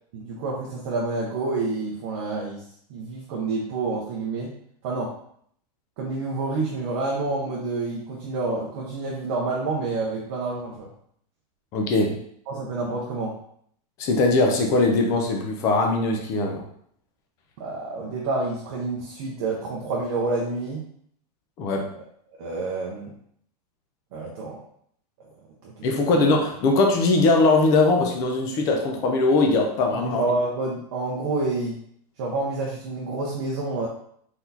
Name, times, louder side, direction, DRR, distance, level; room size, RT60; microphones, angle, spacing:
voice 1, 0.1-2.6 2.9-4.5 4.8-5.1 6.0-10.9 12.5-13.4 17.6-20.9 22.4-23.1 24.1-24.6 25.6-25.7 26.1-26.2 30.0-31.8 32.2-33.9, right 3 dB, 35° right, -3 dB, 0.6 m, -28 dB
voice 2, 11.7-12.2 14.0-16.6 21.6-21.9 25.8-30.2, left 3 dB, 15° left, 2 dB, 0.4 m, -21 dB
4.4 x 4.0 x 2.7 m, 0.66 s
supercardioid pair, 180°, 21 cm